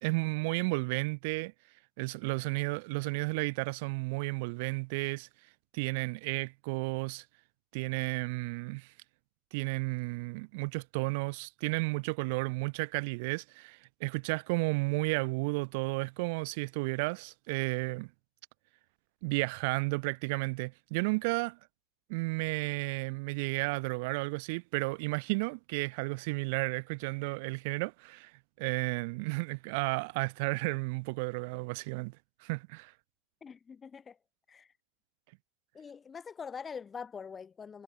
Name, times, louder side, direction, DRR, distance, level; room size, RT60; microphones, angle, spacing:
voice 1, 0.0-1.5 2.0-5.3 5.7-7.2 7.7-8.9 9.5-18.1 19.2-21.6 22.1-28.3 28.6-32.2 32.4-32.9, right 28 dB, 60° right, 1.3 m, -33 dB
voice 2, 33.4-34.2 34.5-34.7 35.7-37.8, left 6 dB, 20° left, 5.4 m, -44 dB
supercardioid pair, 150°, 0 cm